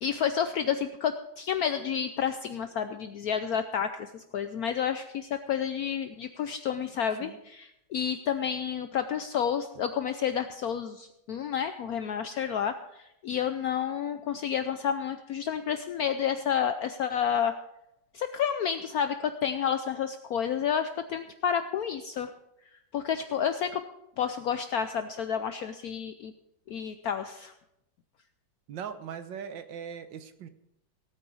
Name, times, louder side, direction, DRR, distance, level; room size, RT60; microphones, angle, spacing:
voice 1, 0.0-17.5 18.1-22.3 22.9-23.8 24.2-26.3 26.7-27.5, left 8 dB, 65° left, 9 dB, 1.0 m, -30 dB
voice 2, 28.7-30.5, right 7 dB, 80° right, 10 dB, 1.7 m, -40 dB
17.5 x 8.9 x 4.8 m, 0.83 s
omnidirectional pair, 2.0 m